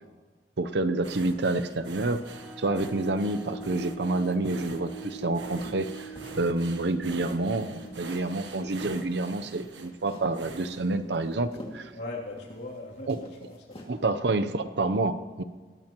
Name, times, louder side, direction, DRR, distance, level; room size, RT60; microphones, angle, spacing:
voice 1, 0.6-2.2 2.6-6.1 6.4-11.9 13.1-13.2 13.9-15.4, right 2 dB, 75° right, 10 dB, 0.7 m, -28 dB
sound 1, 1.0-11.6 12.1-12.3 12.7-12.8, right 3 dB, 90° right, 1.2 m, -46 dB
sound 2, 2.2-9.6, right 3 dB, 5° right, 0.9 m, -44 dB
sound 3, 5.6-7.4 7.8-8.8 9.1-9.2 9.4-10.4 10.9-12.8 13.0-14.2, equal, 35° left, 2.3 m, -48 dB
voice 2, 11.9-13.8, left 2 dB, 75° left, -3 dB, 2.9 m, -39 dB
21.5 x 16.0 x 3.0 m, 1.5 s
head